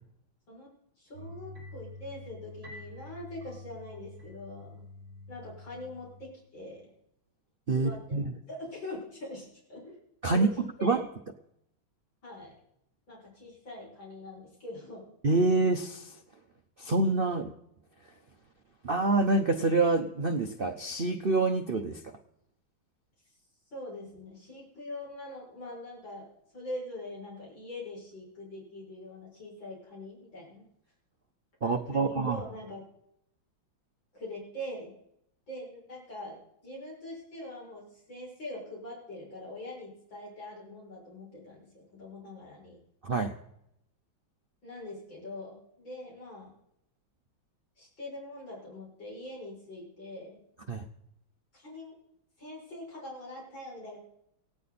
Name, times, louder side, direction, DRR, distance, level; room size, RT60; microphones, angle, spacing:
voice 1, 1.0-4.8 5.3-6.8 7.7-8.2 8.5-10.0 10.3-11.0 12.2-12.5 13.1-15.1 23.7-26.3 26.5-30.7 31.6-32.8 34.1-34.9 35.5-42.8 44.6-46.5 47.8-50.4 51.5-51.9 52.4-54.0, left 1 dB, 65° left, -4 dB, 7.7 m, -43 dB
sound 1, 1.1-6.2, left 2 dB, 40° right, 6.4 m, -47 dB
voice 2, 7.7-8.3 10.2-10.5 10.8-11.0 15.2-16.1 16.8-17.5 18.8-22.0 31.6-32.4 43.0-43.3 50.7-50.9, right 3 dB, 65° right, 6 dB, 0.5 m, -26 dB
18.0 x 16.5 x 4.2 m, 0.76 s
omnidirectional pair, 2.2 m